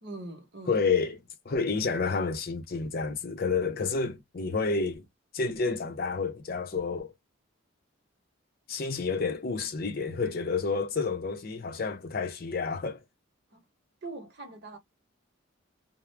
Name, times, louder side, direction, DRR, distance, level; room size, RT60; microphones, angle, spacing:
voice 1, 0.0-0.8 13.5-13.7 14.0-14.8, right 2 dB, 50° right, 0.8 m, -42 dB
voice 2, 0.7-1.2 1.5-5.0 5.3-7.1 8.7-13.0, left 4 dB, 45° left, 0.5 m, -29 dB
2.3 x 2.0 x 3.1 m
head